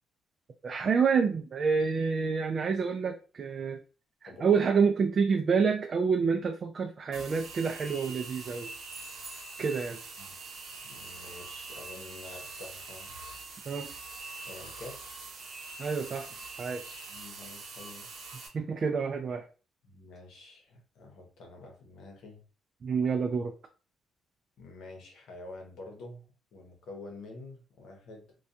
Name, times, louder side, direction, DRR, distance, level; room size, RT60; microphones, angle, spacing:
voice 1, 0.6-3.8 4.2-8.7 9.6-10.0 13.7-13.9 15.8-16.3 16.6-17.0 18.5-19.5 22.8-23.5, right 5 dB, 45° right, 4 dB, 0.3 m, -28 dB
voice 2, 4.2-4.6 10.2-10.3 10.8-13.1 14.4-15.0 17.1-18.1 19.8-22.4 24.6-28.4, left 2 dB, 80° left, 2 dB, 0.8 m, -47 dB
sound 1, 7.1-18.5, right 3 dB, 80° right, 0.8 m, -44 dB
sound 2, 8.9-10.0, right 1 dB, 30° right, 0.9 m, -50 dB
2.3 x 2.2 x 2.6 m, 0.35 s
cardioid pair, 90°, 0 cm